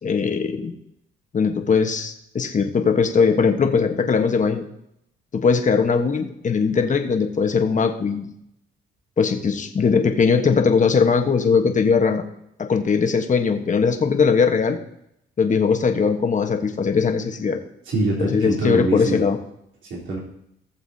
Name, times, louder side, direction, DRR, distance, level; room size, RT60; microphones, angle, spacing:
voice 1, 0.0-0.7 1.3-4.6 5.3-8.3 9.2-12.2 12.6-14.8 15.4-17.6 18.2-19.4, left 5 dB, 40° left, 5 dB, 1.2 m, -20 dB
voice 2, 17.9-19.2 19.9-20.2, right 2 dB, 65° right, -4 dB, 3.7 m, -24 dB
18.0 x 7.1 x 2.8 m, 0.78 s
cardioid pair, 90°, 20 cm